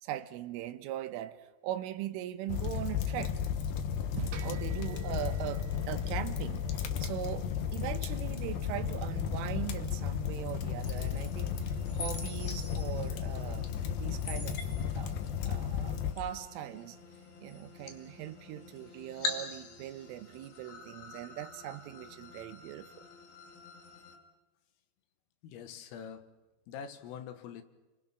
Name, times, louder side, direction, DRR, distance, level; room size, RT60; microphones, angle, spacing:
voice 1, 0.0-3.3 4.2-7.5 7.7-14.7 15.0-15.2 15.5-17.0 17.4-23.0, right 13 dB, 80° right, 3.4 m, -40 dB
sound 1, 2.5-16.1, left 8 dB, 70° left, 2.3 m, -34 dB
sound 2, 4.3-21.7, right 1 dB, 65° right, 3.3 m, -58 dB
sound 3, 10.8-24.2, left 3 dB, 50° left, 3.6 m, -45 dB
voice 2, 25.4-26.3 26.7-27.6, left 7 dB, 85° left, 4.1 m, -44 dB
30.0 x 23.5 x 6.0 m
omnidirectional pair, 5.8 m